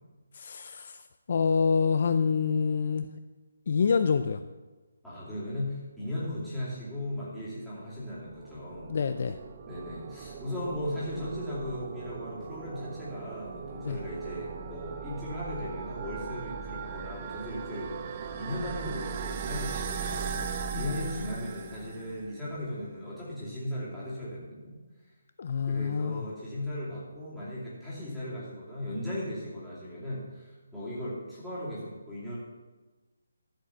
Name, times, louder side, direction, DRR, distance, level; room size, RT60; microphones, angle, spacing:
voice 1, 0.3-1.0 1.3-3.1 3.7-4.4 8.9-9.4 13.8-14.0 20.7-21.0 25.4-26.3, left 5 dB, 40° left, 9 dB, 0.4 m, -27 dB
voice 2, 5.0-8.9 9.7-24.7 25.6-32.4, left 1 dB, ahead, -12 dB, 2.7 m, -37 dB
sound 1, 8.1-22.3, right 6 dB, 20° right, 0.5 m, -38 dB
13.5 x 5.3 x 7.0 m, 1.2 s
hypercardioid pair, 175°, 0 cm